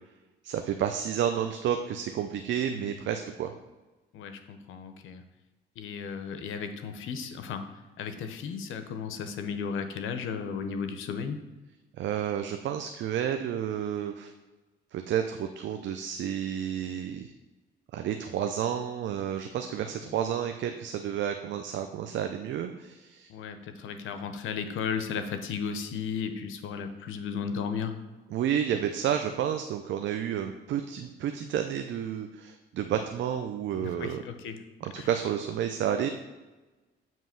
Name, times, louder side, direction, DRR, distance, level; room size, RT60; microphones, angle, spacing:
voice 1, 0.4-3.5 12.0-14.3 14.9-17.3 17.9-23.3 28.3-34.2 34.8-36.1, right 9 dB, 70° right, 6 dB, 0.5 m, -31 dB
voice 2, 4.1-5.2 5.8-7.7 8.0-11.4 23.3-28.0 33.7-34.6 35.0-35.1, left 6 dB, 80° left, 8 dB, 0.7 m, -35 dB
7.4 x 3.0 x 5.8 m, 1.2 s
cardioid pair, 90°, 20 cm